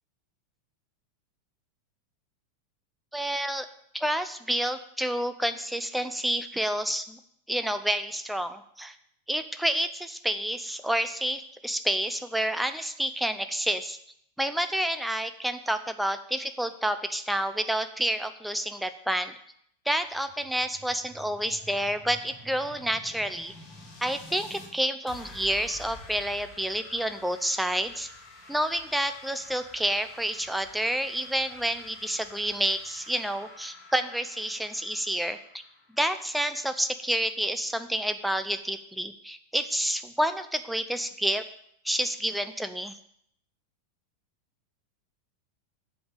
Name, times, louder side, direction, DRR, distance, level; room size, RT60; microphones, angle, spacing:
voice 1, 3.1-3.7 3.9-7.2 7.5-8.9 9.3-14.0 14.4-19.3 19.9-23.5 24.0-28.1 28.5-35.4 36.0-41.4 41.8-43.0, right 1 dB, ahead, 10 dB, 0.5 m, -29 dB
sound 1, 20.1-24.7 25.1-36.6, left 1 dB, 30° left, 2.4 m, -49 dB
7.8 x 5.2 x 7.1 m, 0.71 s
figure-of-eight pair, 90°, 0 cm